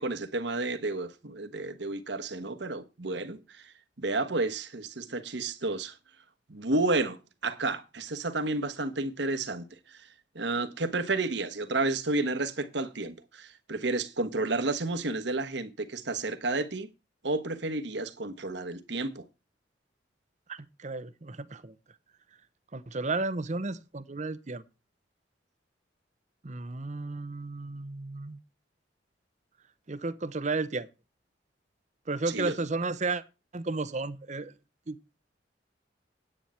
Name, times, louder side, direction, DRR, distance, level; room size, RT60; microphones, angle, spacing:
voice 1, 0.0-6.0 6.5-10.1 10.3-16.9 17.2-19.2 32.3-32.5, right 2 dB, 70° right, 1.3 m, -31 dB
voice 2, 20.5-21.7 22.7-24.6 26.4-28.4 29.9-30.9 32.1-33.2 33.5-34.5 34.9-35.0, right 3 dB, 40° right, 0.8 m, -33 dB
9.9 x 9.1 x 4.4 m
head